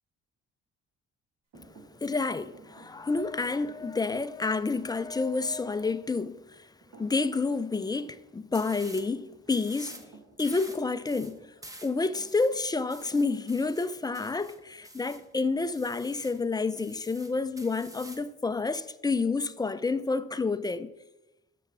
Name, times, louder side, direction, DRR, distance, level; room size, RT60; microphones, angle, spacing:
Thump thud, 1.5-6.5 6.8-7.4 7.7-13.8, right 3 dB, 65° right, 1.9 m, -57 dB
voice 1, 2.0-6.7 7.0-10.1 10.4-11.5 11.8-20.9, left 3 dB, 15° left, 0.4 m, -29 dB
sound 1, 8.5-9.1 9.5-10.1 10.4-15.3 15.7-16.4 16.8-18.3, right 1 dB, 10° right, 0.9 m, -48 dB
6.5 x 5.9 x 7.1 m
cardioid pair, 90°, 30 cm